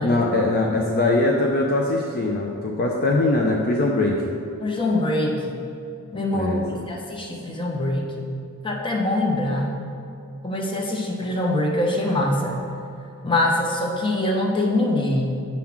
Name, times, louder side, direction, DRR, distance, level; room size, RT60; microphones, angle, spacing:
voice 1, 0.0-4.4 6.3-6.6, left 2 dB, 45° left, 0 dB, 0.5 m, -21 dB
voice 2, 4.6-5.6 6.1-6.5 6.9-8.3 8.6-9.7 10.4-12.6 13.2-15.4, left 1 dB, 20° left, 0 dB, 0.8 m, -24 dB
7.3 x 3.7 x 5.8 m, 2.6 s
head